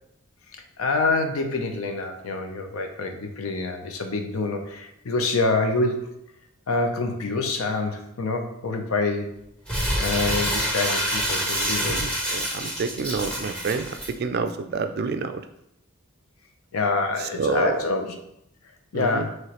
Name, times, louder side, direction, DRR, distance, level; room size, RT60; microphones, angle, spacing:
voice 1, 0.5-6.1 6.7-9.4 10.0-12.0 16.7-18.2 18.9-19.4, left 3 dB, 80° left, 4 dB, 0.6 m, -26 dB
Crumpling crinkling, 9.7-14.1, equal, 5° left, 0.8 m, -27 dB
voice 2, 11.5-15.4 17.4-17.8 18.9-19.3, right 4 dB, 50° right, 8 dB, 0.3 m, -28 dB
4.8 x 3.1 x 2.9 m, 0.78 s
head